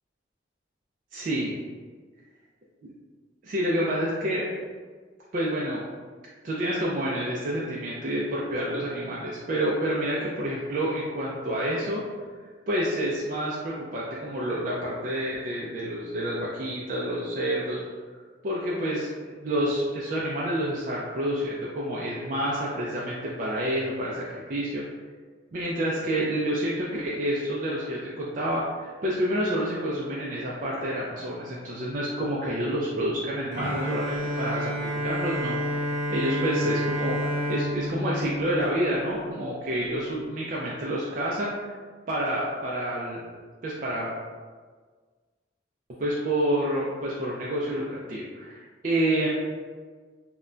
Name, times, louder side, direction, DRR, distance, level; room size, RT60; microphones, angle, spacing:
voice 1, 1.1-1.5 2.8-2.9 3.4-4.4 5.3-5.8 6.4-12.0 12.7-17.8 18.4-24.8 25.5-41.7 42.1-43.2 43.6-44.1 46.0-49.3, right 1 dB, 45° right, -5 dB, 0.3 m, -28 dB
Bowed string instrument, 33.5-39.4, equal, 65° left, 0.9 m, -30 dB
2.1 x 2.1 x 3.7 m, 1.5 s
head